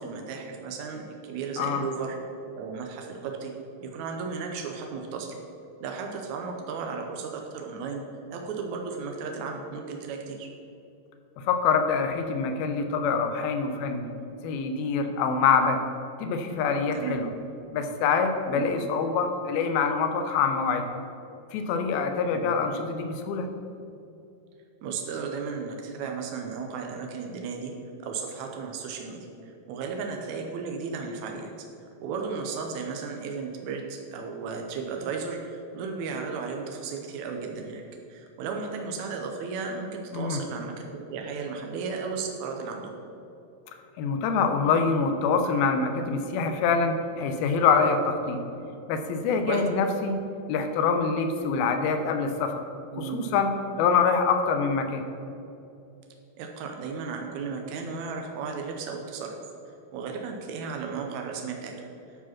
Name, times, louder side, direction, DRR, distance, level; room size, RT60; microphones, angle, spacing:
voice 1, 0.0-2.2 2.6-3.5 3.8-5.3 5.8-8.0 8.3-10.5 16.9-17.2 18.5-18.8 22.3-22.5 24.8-27.7 28.0-31.5 32.0-37.8 38.1-42.9 49.4-49.6 52.9-53.4 56.4-59.3 59.9-61.7, right 5 dB, 90° right, 2 dB, 1.6 m, -34 dB
voice 2, 11.4-14.1 14.4-15.8 16.2-17.3 17.7-20.9 21.5-23.5 40.1-40.4 44.0-48.4 48.9-50.2 50.5-52.6 53.0-53.5 53.8-55.1, left 5 dB, 80° left, 6 dB, 2.5 m, -25 dB
11.0 x 4.8 x 5.9 m, 2.7 s
omnidirectional pair, 4.3 m